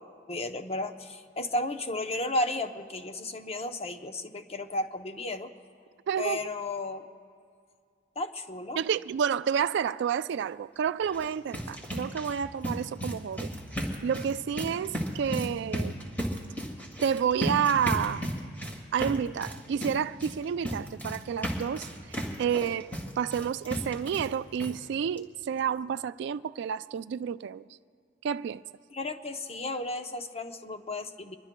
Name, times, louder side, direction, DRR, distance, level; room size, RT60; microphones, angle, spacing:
voice 1, 0.3-5.5 6.2-7.1 8.2-8.8 28.9-31.4, left 2 dB, 35° left, 0.7 m, -33 dB
voice 2, 6.1-6.5 8.8-13.5 14.0-16.0 17.0-18.3 18.9-22.9 23.2-27.7 28.2-28.6, right 7 dB, 65° right, 0.3 m, -30 dB
sound 1, 11.0-24.3 24.6-24.7 25.2-25.3 25.6-25.7, equal, 10° left, 1.9 m, -35 dB
25.0 x 22.0 x 2.2 m
head